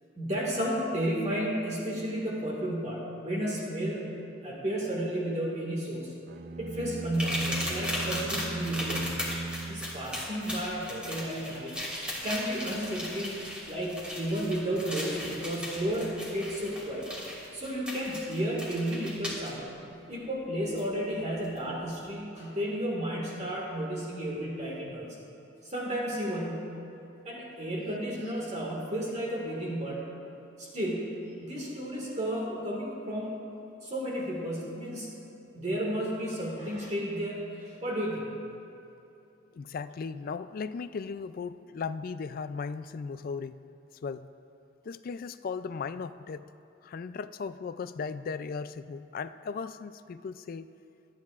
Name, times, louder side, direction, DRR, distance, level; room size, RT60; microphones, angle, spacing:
voice 1, 0.2-6.1 6.6-9.1 9.7-11.8 12.2-17.1 17.5-25.2 25.6-26.8 27.3-30.1 30.6-33.4 33.8-35.1 35.5-38.3, equal, 35° right, -4 dB, 1.8 m, -33 dB
sound 1, 6.3-10.6, right 3 dB, 50° right, 0.4 m, -38 dB
sound 2, 7.1-19.5 20.8-20.9 21.4-21.6, left 1 dB, 5° right, 2.5 m, -37 dB
voice 2, 39.5-43.6 44.0-44.3 44.8-46.4 46.8-50.7, left 5 dB, 50° left, 13 dB, 0.3 m, -37 dB
25.0 x 9.4 x 2.4 m, 2.9 s
head